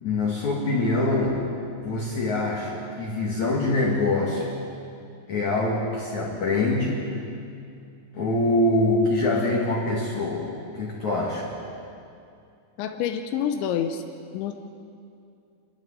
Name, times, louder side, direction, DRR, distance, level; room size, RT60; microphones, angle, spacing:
voice 1, 0.0-1.5 1.8-4.5 5.3-7.1 8.1-10.5 10.8-11.5, left 2 dB, 50° left, -3 dB, 2.9 m, -24 dB
voice 2, 12.8-14.0 14.3-14.5, left 8 dB, 85° left, 6 dB, 3.2 m, -27 dB
26.5 x 13.0 x 9.8 m, 2.5 s
omnidirectional pair, 5.2 m